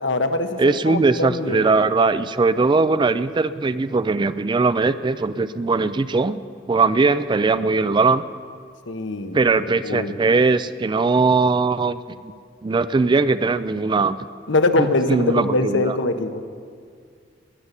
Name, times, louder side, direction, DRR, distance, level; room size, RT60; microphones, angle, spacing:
voice 1, 0.0-1.8 8.9-9.4 9.8-10.1 14.5-16.4, left 2 dB, 70° left, 8 dB, 1.0 m, -22 dB
voice 2, 0.6-6.4 6.7-8.2 9.3-12.2 12.6-14.2 14.8-15.9, right 3 dB, 25° right, 14 dB, 0.4 m, -20 dB
21.0 x 7.1 x 8.2 m, 2.2 s
head